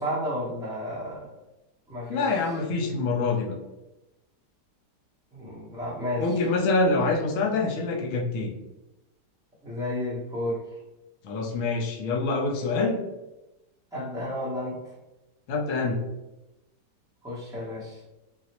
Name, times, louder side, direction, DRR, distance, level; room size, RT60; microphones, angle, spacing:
voice 1, 0.0-1.3 1.9-2.4 5.3-6.3 9.6-10.8 13.9-14.8 17.2-18.0, left 1 dB, 5° right, -8 dB, 0.3 m, -32 dB
voice 2, 2.1-3.5 6.2-8.5 11.2-13.0 15.5-16.0, left 3 dB, 65° left, -1 dB, 0.8 m, -25 dB
3.9 x 2.0 x 2.8 m, 0.98 s
omnidirectional pair, 1.8 m